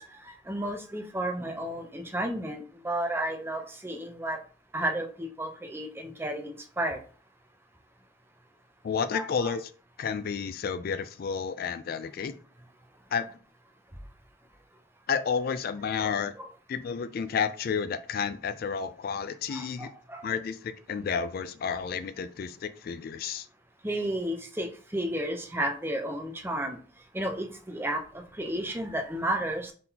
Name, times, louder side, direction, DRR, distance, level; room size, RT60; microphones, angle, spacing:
voice 1, 0.0-4.4 4.7-7.0 9.1-9.5 16.0-16.1 16.3-16.5 19.5-20.3 23.8-29.7, right 1 dB, 15° right, 4 dB, 0.6 m, -33 dB
voice 2, 8.8-9.7 10.0-12.3 13.1-13.3 15.1-16.3 16.7-19.9 20.2-23.5, left 6 dB, 55° left, 12 dB, 0.3 m, -31 dB
4.0 x 3.6 x 2.8 m, 0.40 s
head